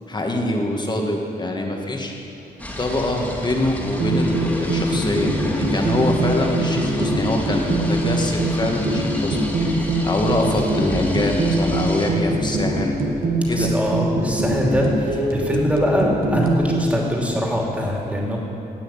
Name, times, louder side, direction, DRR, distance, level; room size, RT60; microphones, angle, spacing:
voice 1, 0.1-2.1 2.8-12.9 13.5-13.7, left 1 dB, 30° left, 1 dB, 1.7 m, -24 dB
sound 1, 2.6-12.1, left 1 dB, 10° left, 2.2 m, -31 dB
sound 2, 4.0-16.9, right 1 dB, 65° right, 1.6 m, -23 dB
voice 2, 13.5-18.4, equal, 10° right, -2 dB, 2.8 m, -23 dB
16.0 x 6.3 x 8.8 m, 2.7 s
cardioid pair, 105°, 16 cm